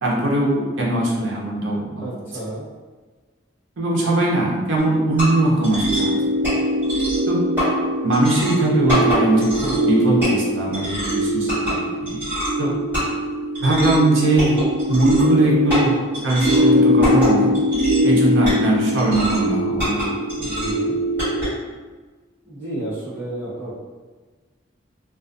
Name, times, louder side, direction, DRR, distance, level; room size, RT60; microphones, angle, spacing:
voice 1, 0.0-2.1 3.8-6.4 7.3-7.4 8.0-12.2 12.6-12.7 13.6-14.6 14.9-16.0 16.2-17.5 18.0-20.0, right 2 dB, 85° right, -4 dB, 0.7 m, -20 dB
voice 2, 2.0-2.7 20.4-21.0 22.5-23.8, right 1 dB, 10° left, -12 dB, 0.8 m, -31 dB
sound 1, 4.8-21.5, equal, 10° right, 1.3 m, -21 dB
2.4 x 2.3 x 2.5 m, 1.4 s
head